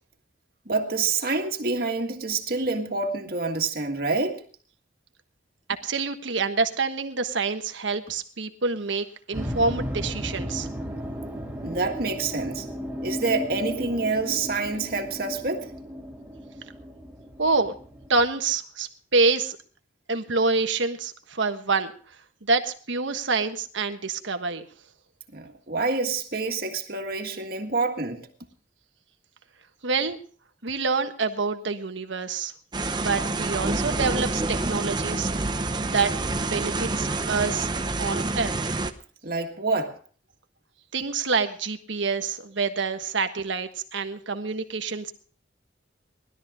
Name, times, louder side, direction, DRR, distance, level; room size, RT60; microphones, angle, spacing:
voice 1, 0.7-4.4 11.6-12.7 13.0-15.7 25.3-28.2 39.2-40.0, right 3 dB, 50° right, 1.8 m, -27 dB
voice 2, 5.8-10.7 17.4-17.7 18.1-19.6 20.1-21.9 22.4-24.7 29.8-30.2 30.6-32.5 33.0-35.3 35.8-36.1 36.4-37.7 38.0-38.5 40.9-45.1, right 4 dB, 80° right, 1.4 m, -26 dB
sound 1, 9.3-18.3, equal, 5° right, 2.5 m, -35 dB
sound 2, 32.7-38.9, right 2 dB, 25° right, 0.8 m, -27 dB
20.0 x 12.5 x 3.6 m
head